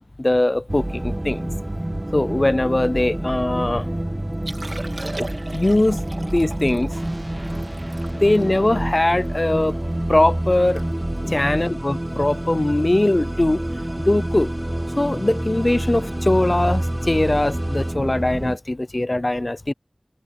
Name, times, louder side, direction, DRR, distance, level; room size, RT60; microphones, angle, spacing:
voice 1, 0.2-1.5 2.1-3.9 5.2-6.9 8.1-9.7 10.1-10.8 11.2-13.6 14.0-14.5 15.0-19.7, left 1 dB, 40° left, 0.6 m, -21 dB
sound 1, 0.7-18.6, right 1 dB, 25° right, 0.4 m, -28 dB
Liquid, 4.3-9.7 10.2-10.3 10.5-10.9 11.1-11.4 12.0-12.2 13.7-13.8, right 2 dB, 65° right, 3.3 m, -38 dB
sound 2, 9.0-18.0, equal, 10° right, 5.1 m, -44 dB
wide cardioid pair, 45°, 0 cm